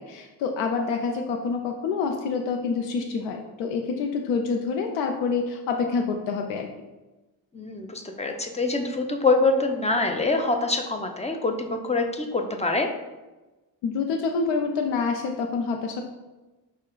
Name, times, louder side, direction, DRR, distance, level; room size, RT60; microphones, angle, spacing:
voice 1, 0.0-6.7 13.8-16.0, left 5 dB, 85° left, 3 dB, 0.5 m, -27 dB
voice 2, 7.5-12.9, left 3 dB, 15° left, 5 dB, 0.5 m, -25 dB
5.1 x 2.2 x 3.8 m, 1.1 s
supercardioid pair, 70°, 42 cm